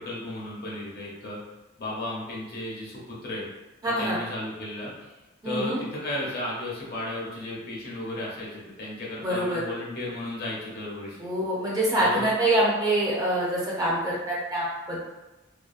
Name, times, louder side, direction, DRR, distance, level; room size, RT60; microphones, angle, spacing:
voice 1, 0.0-1.4 1.8-3.5 4.0-5.1 5.4-11.2 12.0-12.3, left 1 dB, 50° left, -4 dB, 0.6 m, -34 dB
voice 2, 3.8-4.2 5.4-5.8 9.2-9.6 11.2-15.1, right 1 dB, 20° right, -6 dB, 0.5 m, -25 dB
2.7 x 2.2 x 2.4 m, 1.1 s
head